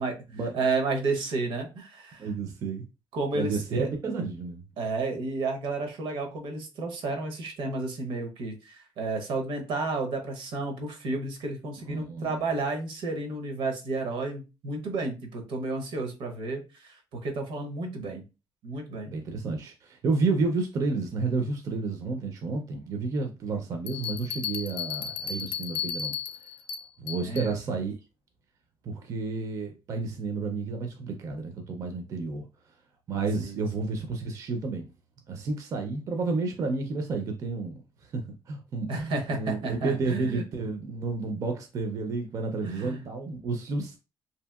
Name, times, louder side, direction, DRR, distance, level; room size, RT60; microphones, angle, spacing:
voice 1, 0.5-2.3 3.1-3.9 4.8-18.2 18.6-19.1 27.2-27.6 33.4-33.6 38.9-40.4 42.6-43.0, right 3 dB, 75° right, 0.7 m, -32 dB
voice 2, 2.2-2.9 3.3-4.6 11.9-12.5 19.0-26.1 27.0-27.9 28.8-32.4 33.1-34.9 35.3-37.8 38.1-44.0, right 3 dB, 40° right, 0.4 m, -31 dB
sound 1, 23.9-27.5, left 8 dB, 85° left, 0.4 m, -34 dB
2.7 x 2.7 x 2.2 m
cardioid pair, 160°, 9 cm